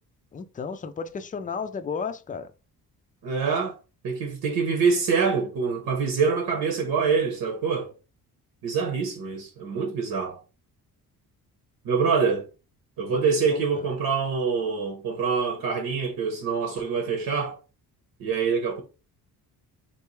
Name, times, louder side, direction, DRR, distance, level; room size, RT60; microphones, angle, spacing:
voice 1, 0.3-2.5 13.1-13.2 13.5-13.6, left 5 dB, 25° left, 0.4 m, -33 dB
voice 2, 3.2-3.7 4.0-7.9 8.6-10.4 11.8-12.5 13.0-17.6 18.2-18.8, right 5 dB, 75° right, 1.2 m, -25 dB
4.2 x 3.2 x 3.2 m
cardioid pair, 115°, 37 cm